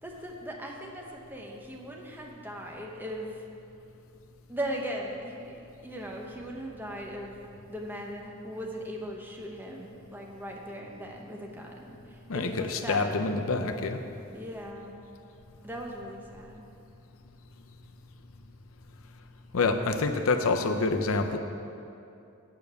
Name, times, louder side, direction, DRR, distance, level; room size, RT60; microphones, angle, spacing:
voice 1, 0.0-3.4 4.5-7.3 7.7-13.2 14.3-15.0 15.6-16.6, equal, 10° right, -1 dB, 0.8 m, -39 dB
voice 2, 12.3-14.0 19.5-21.4, left 3 dB, 70° left, 6 dB, 0.6 m, -27 dB
7.0 x 6.6 x 6.8 m, 2.6 s
head